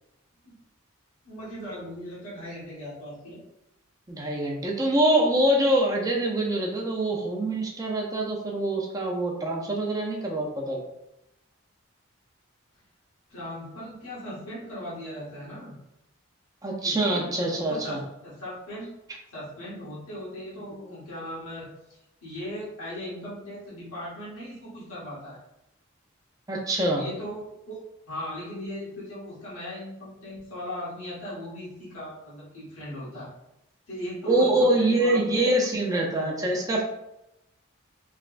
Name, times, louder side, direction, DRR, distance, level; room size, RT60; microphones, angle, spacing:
voice 1, 1.2-3.4 13.3-15.7 16.8-17.3 17.5-18.9 19.3-25.4 26.9-27.8 28.1-33.3 33.9-35.4 35.8-36.3, left 1 dB, 85° left, -8 dB, 1.5 m, -38 dB
voice 2, 4.1-10.8 16.6-18.0 26.5-27.0 34.3-36.8, right 1 dB, 15° right, -1 dB, 0.5 m, -24 dB
3.3 x 2.9 x 2.5 m, 0.89 s
head